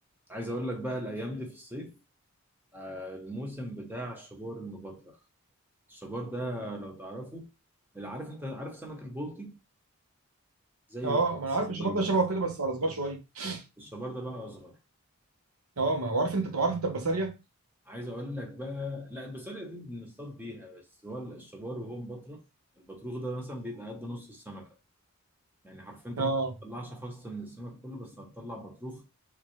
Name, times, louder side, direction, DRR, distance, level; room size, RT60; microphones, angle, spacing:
voice 1, 0.3-1.9 2.7-5.2 5.9-7.5 7.9-9.6 10.9-11.2 11.6-12.0 13.8-14.8 17.9-22.4 22.8-24.7 25.6-26.3 26.6-29.0, equal, 10° right, 0.9 m, -39 dB
voice 2, 11.0-13.6 15.8-17.3 26.2-26.5, right 3 dB, 85° right, 1.0 m, -28 dB
3.2 x 3.2 x 3.1 m
head